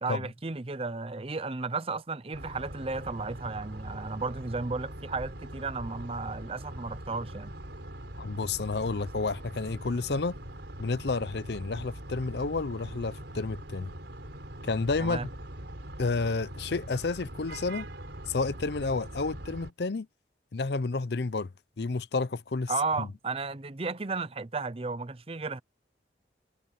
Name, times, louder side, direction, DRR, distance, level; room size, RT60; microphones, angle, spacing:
voice 1, 0.0-7.5 15.0-15.3 22.7-25.6, right 3 dB, 30° right, 0.7 m, -34 dB
sound 1, 2.3-19.7, right 1 dB, 75° right, 4.5 m, -42 dB
voice 2, 8.2-10.4 10.8-13.9 14.6-15.3 16.0-17.9 18.3-20.1 20.5-21.5 21.8-22.7 23.0-23.1, left 3 dB, 65° left, 0.6 m, -30 dB
head